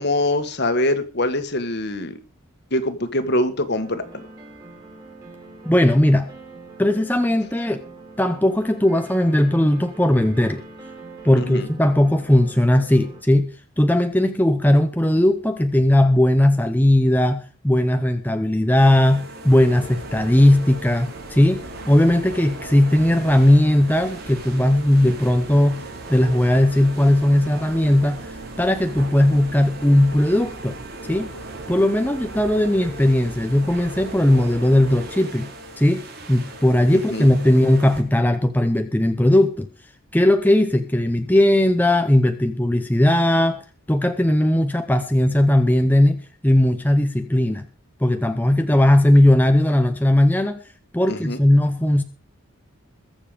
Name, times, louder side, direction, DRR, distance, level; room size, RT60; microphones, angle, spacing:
voice 1, 0.0-2.2 2.7-4.2 11.4-11.7 36.9-37.3 51.1-51.4, left 1 dB, 50° left, 10 dB, 1.8 m, -24 dB
sound 1, 3.8-13.2, right 2 dB, 20° right, 3.9 m, -43 dB
voice 2, 5.6-6.3 6.8-7.8 8.2-10.6 11.2-13.5 13.8-25.8 26.1-28.2 28.6-30.8 31.1-31.3 31.7-35.5 35.8-39.7 40.1-47.6 48.0-50.6 50.9-52.0, left 1 dB, 10° left, 7 dB, 0.8 m, -18 dB
sound 2, 18.8-38.0, right 1 dB, 45° right, 3.8 m, -39 dB
sound 3, 19.6-35.1, right 3 dB, 85° right, 2.9 m, -40 dB
21.5 x 7.3 x 5.2 m, 0.36 s
head